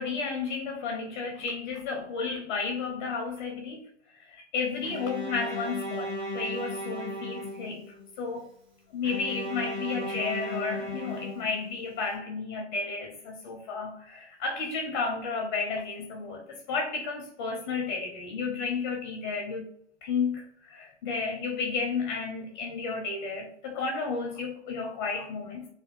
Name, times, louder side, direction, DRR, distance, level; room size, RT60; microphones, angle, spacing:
voice 1, 0.0-8.5 8.9-19.7 20.0-25.7, left 4 dB, 25° left, 0.6 m, -32 dB
Bowed string instrument, 4.8-8.0 9.0-12.0, left 1 dB, 15° right, 0.9 m, -36 dB
3.3 x 2.3 x 3.5 m
hypercardioid pair, 135°, 35 cm